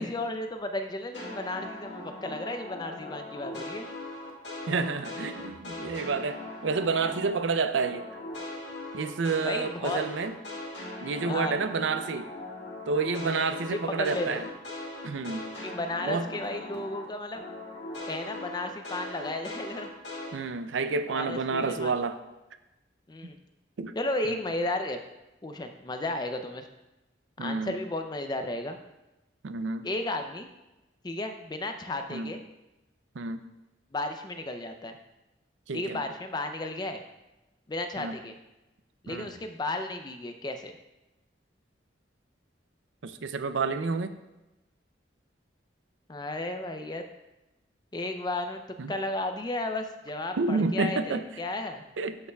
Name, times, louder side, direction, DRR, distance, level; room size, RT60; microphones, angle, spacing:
voice 1, 0.0-3.9 9.4-10.0 11.3-11.6 13.7-14.4 15.6-17.5 18.1-19.9 20.9-21.9 23.1-23.4 24.0-25.0 25.4-26.7 27.4-28.8 29.8-30.5 31.0-32.4 33.9-35.0 35.7-37.0 37.7-38.4 39.0-40.8 46.1-47.0 47.9-51.8, left 2 dB, 20° left, 6 dB, 0.5 m, -34 dB
sound 1, 1.1-7.4 7.7-17.0 17.3-20.3, left 2 dB, 75° left, 1.7 m, -40 dB
voice 2, 4.7-8.1 8.9-10.4 11.0-12.3 12.9-14.5 15.0-15.5 16.0-16.3 20.3-22.2 23.8-23.9 27.4-27.8 29.4-29.9 32.1-32.3 33.1-33.4 35.7-36.0 38.0-38.2 39.1-39.3 43.0-44.1 48.8-48.9 50.4-51.2 52.0-52.3, right 4 dB, 90° right, 10 dB, 0.5 m, -29 dB
12.5 x 5.5 x 2.3 m, 0.99 s
head